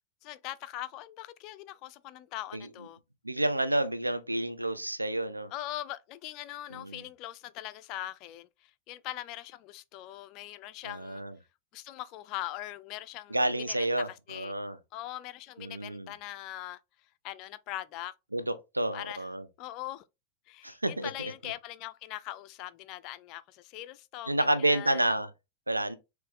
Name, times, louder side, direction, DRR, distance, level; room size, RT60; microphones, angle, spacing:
voice 1, 0.2-3.0 5.5-11.2 11.7-13.9 14.3-14.5 14.9-16.8 17.2-18.1 18.9-19.2 19.6-20.0 20.5-25.1, left 14 dB, 40° left, 0.3 m, -41 dB
voice 2, 3.2-5.5 6.8-7.0 10.8-11.3 13.3-14.8 15.6-16.1 18.3-19.4 20.6-21.3 24.3-25.3 25.7-25.9, right 1 dB, 85° right, 0.5 m, -30 dB
3.4 x 3.0 x 3.2 m
figure-of-eight pair, 90°, 0 cm